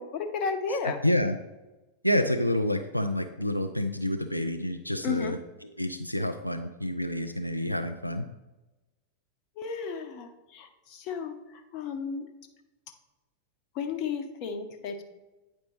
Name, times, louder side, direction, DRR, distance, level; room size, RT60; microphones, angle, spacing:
voice 1, 0.0-1.0 5.0-5.4 9.6-12.3 13.7-15.0, left 5 dB, 40° left, 7 dB, 0.9 m, -33 dB
voice 2, 1.0-1.4 2.0-8.3, left 1 dB, 90° left, 6 dB, 0.3 m, -28 dB
9.0 x 5.2 x 3.2 m, 1.1 s
figure-of-eight pair, 90°, 0 cm